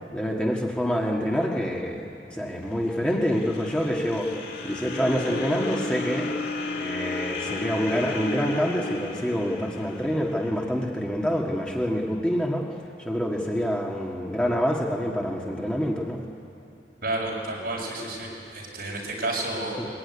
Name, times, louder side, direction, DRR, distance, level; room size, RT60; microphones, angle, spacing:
voice 1, 0.1-12.7 13.0-16.2 19.8-19.9, equal, 5° left, -2 dB, 1.7 m, -27 dB
sound 1, 2.6-10.9, left 2 dB, 85° left, 3.3 m, -33 dB
voice 2, 17.0-19.8, right 2 dB, 60° right, -3 dB, 6.6 m, -31 dB
22.0 x 21.5 x 9.6 m, 2.7 s
head